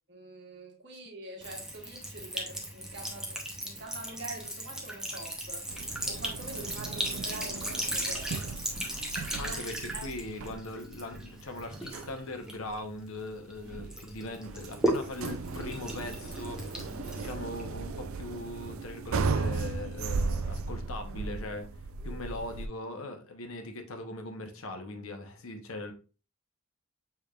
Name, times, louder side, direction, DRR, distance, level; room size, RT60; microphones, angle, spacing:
voice 1, 0.1-5.7 6.1-9.6 9.9-10.1 13.6-13.8, right 2 dB, 55° right, 1.3 m, -45 dB
Sink (filling or washing) / Trickle dribble, 1.4-13.5 13.9-17.8, right 1 dB, 5° right, 0.7 m, -36 dB
sound 1, 5.7-22.7, right 4 dB, 75° right, 0.4 m, -37 dB
voice 2, 9.4-21.7 22.0-25.9, left 2 dB, 75° left, 0.9 m, -40 dB
6.6 x 3.4 x 2.4 m
head